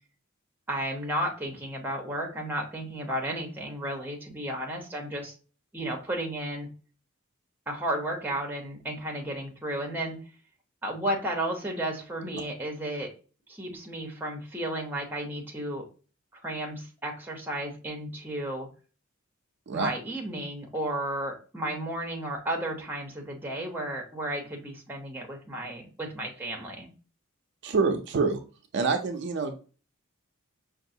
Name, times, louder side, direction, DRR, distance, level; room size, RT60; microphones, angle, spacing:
voice 1, 0.7-5.3 5.7-6.7 7.7-10.2 10.8-13.1 13.5-15.9 16.4-18.7 19.7-26.9, right 1 dB, 10° right, 1 dB, 0.7 m, -33 dB
voice 2, 27.6-28.4 28.7-29.6, right 4 dB, 55° right, 5 dB, 0.4 m, -26 dB
5.3 x 2.4 x 2.7 m, 0.37 s
head